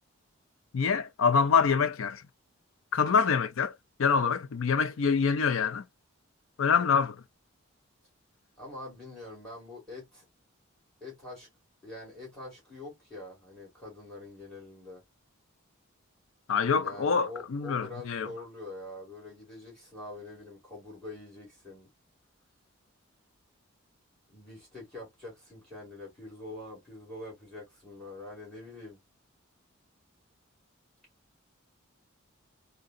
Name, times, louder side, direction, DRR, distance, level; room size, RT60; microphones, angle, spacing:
voice 1, 0.7-2.2 2.9-3.7 4.0-5.8 6.6-7.2 16.5-18.3, left 6 dB, 70° left, 0.4 m, -25 dB
voice 2, 8.6-10.3 11.0-11.5 11.8-15.0 16.8-21.9 24.3-29.0, left 2 dB, 5° left, 2.2 m, -45 dB
3.6 x 2.3 x 2.5 m
head